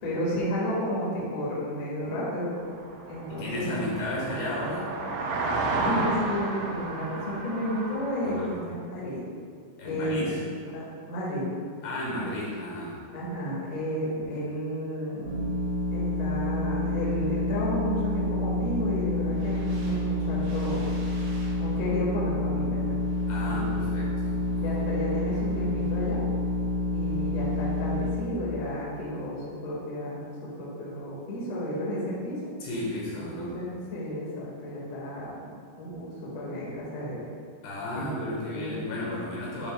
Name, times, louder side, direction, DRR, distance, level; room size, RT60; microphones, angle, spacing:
voice 1, 0.0-2.5 3.1-3.8 5.8-9.2 9.8-10.2 10.7-11.5 13.1-15.4 15.9-20.9 21.6-23.0 23.4-23.8 24.6-26.2 26.9-32.4 33.2-35.3 35.8-37.2 38.0-38.7, equal, 50° left, -6 dB, 2.2 m, -32 dB
sound 1, 2.6-8.5, right 2 dB, 90° right, 3.0 m, -32 dB
voice 2, 3.3-4.9 8.2-8.5 9.8-10.4 11.8-13.0 23.3-24.8 32.6-33.6 37.6-39.7, left 1 dB, 75° left, -5 dB, 3.3 m, -33 dB
sound 2, 15.3-28.2, left 1 dB, 65° right, 2.6 m, -28 dB
10.0 x 6.5 x 2.2 m, 2.2 s
omnidirectional pair, 4.9 m